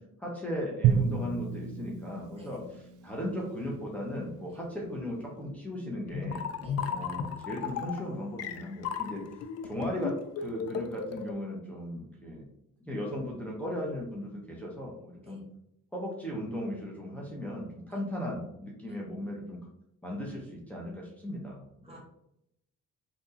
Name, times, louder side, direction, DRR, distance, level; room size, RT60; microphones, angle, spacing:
voice 1, 0.2-6.5 6.9-9.2 9.6-12.4 12.9-15.4 15.9-19.7 20.0-22.0, left 1 dB, 5° left, -4 dB, 0.9 m, -37 dB
Drum, 0.8-3.8, right 7 dB, 80° right, 0.5 m, -30 dB
sound 1, 6.1-11.3, left 7 dB, 55° left, 0.4 m, -35 dB
voice 2, 6.6-6.9 15.2-15.4 17.9-18.0 18.9-19.0 21.8-22.0, equal, 20° right, -2 dB, 1.0 m, -53 dB
3.4 x 2.6 x 2.8 m, 0.78 s
cardioid pair, 90°, 30 cm